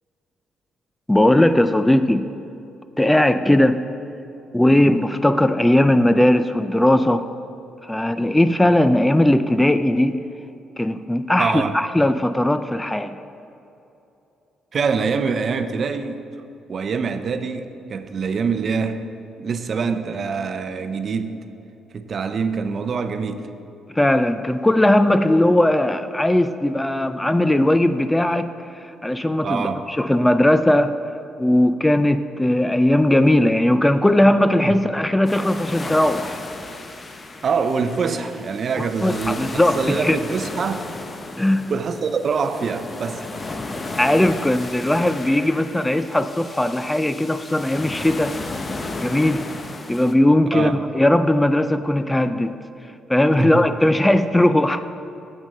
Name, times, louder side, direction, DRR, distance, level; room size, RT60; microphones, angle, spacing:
voice 1, 1.1-2.3 3.0-3.9 4.5-7.3 7.8-10.2 10.8-13.2 23.9-30.9 31.4-36.4 38.8-40.2 41.4-41.7 44.0-48.4 49.0-49.5 49.9-52.5 53.1-54.8, left 1 dB, 10° left, 11 dB, 0.3 m, -18 dB
voice 2, 11.4-11.8 14.7-16.2 16.7-19.0 19.4-21.4 21.9-23.5 29.4-29.8 34.6-34.7 37.4-40.9 41.7-43.2 50.5-50.8 53.4-53.7, right 5 dB, 50° right, 10 dB, 0.6 m, -24 dB
sound 1, 35.2-50.1, left 2 dB, 30° left, 0.7 m, -34 dB
8.3 x 6.2 x 6.6 m, 2.8 s
cardioid pair, 90°, 0 cm